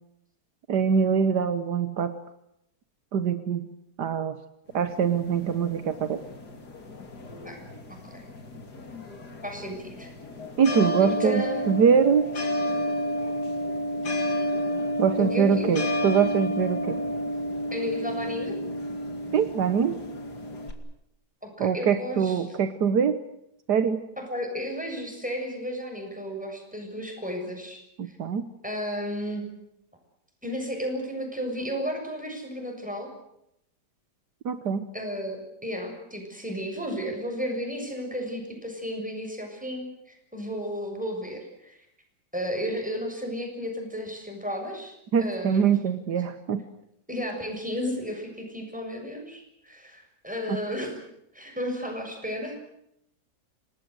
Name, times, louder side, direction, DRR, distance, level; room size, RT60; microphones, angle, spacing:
voice 1, 0.7-2.2 3.1-3.7 4.0-4.4 4.7-6.2 10.6-12.3 15.0-17.0 19.3-20.0 21.6-23.2 23.7-24.0 28.0-28.4 34.4-34.9 45.1-46.6 50.5-50.6, right 6 dB, 75° right, 11 dB, 1.7 m, -23 dB
sound 1, 4.7-20.7, equal, 70° left, 3.3 m, -31 dB
voice 2, 7.9-8.3 9.4-10.1 11.0-11.6 15.2-15.8 17.7-18.6 21.4-22.4 24.2-28.1 28.6-29.5 30.4-33.1 34.9-41.8 42.3-45.0 45.2-45.7 47.1-51.0 51.3-52.7, equal, 5° right, 2 dB, 7.3 m, -33 dB
27.5 x 19.0 x 8.1 m, 0.78 s
omnidirectional pair, 1.8 m